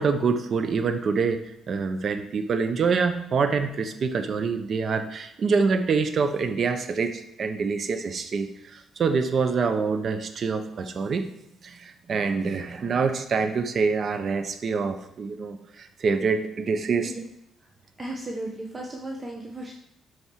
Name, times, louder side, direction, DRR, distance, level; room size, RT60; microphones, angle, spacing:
voice 1, 0.0-11.3 11.6-17.1, right 5 dB, 50° right, 8 dB, 1.0 m, -26 dB
voice 2, 18.0-19.7, right 1 dB, 25° right, -1 dB, 1.4 m, -35 dB
12.5 x 4.9 x 4.8 m, 0.85 s
cardioid pair, 90°, 0 cm